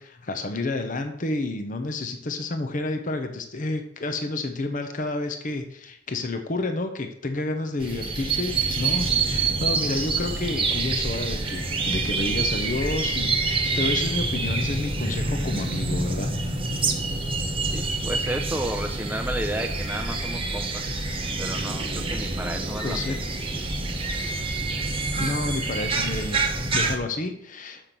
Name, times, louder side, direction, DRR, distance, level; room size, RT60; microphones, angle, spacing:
voice 1, 0.0-16.3 22.8-23.2 23.4-23.7 25.2-27.9, left 2 dB, 40° left, 6 dB, 0.8 m, -30 dB
sound 1, 7.8-27.0, right 3 dB, 25° right, 1.0 m, -27 dB
voice 2, 17.6-20.9 21.4-23.2, right 1 dB, 10° right, 4 dB, 0.5 m, -32 dB
6.9 x 5.8 x 6.0 m, 0.71 s
head